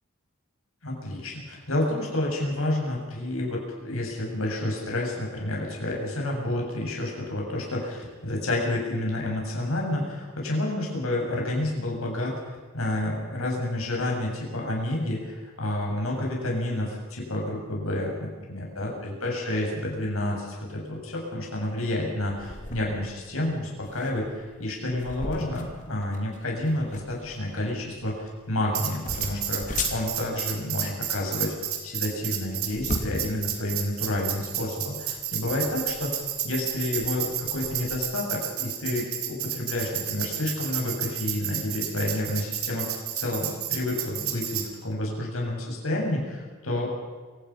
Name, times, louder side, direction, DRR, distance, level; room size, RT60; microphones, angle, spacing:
voice 1, 0.8-31.5 31.8-46.9, left 1 dB, 75° left, -1 dB, 7.1 m, -30 dB
sound 1, 22.3-38.0, left 2 dB, 35° left, 2.7 m, -39 dB
Tambourine, 28.7-44.7, right 11 dB, 85° right, 3.1 m, -31 dB
27.0 x 17.5 x 5.8 m, 1.4 s
head